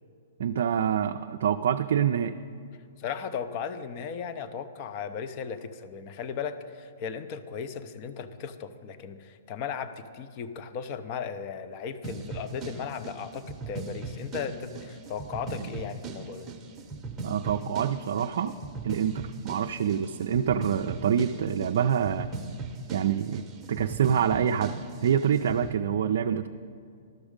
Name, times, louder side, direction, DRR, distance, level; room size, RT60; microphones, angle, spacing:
voice 1, 0.4-2.4 17.2-18.5 18.8-22.3 22.9-23.4 23.7-26.5, right 8 dB, 65° right, 6 dB, 0.3 m, -26 dB
voice 2, 3.0-16.5, left 6 dB, 40° left, 10 dB, 0.6 m, -36 dB
sound 1, 12.0-25.7, right 3 dB, 20° right, 0.8 m, -39 dB
12.0 x 6.1 x 5.1 m, 2.4 s
hypercardioid pair, 135°, 0 cm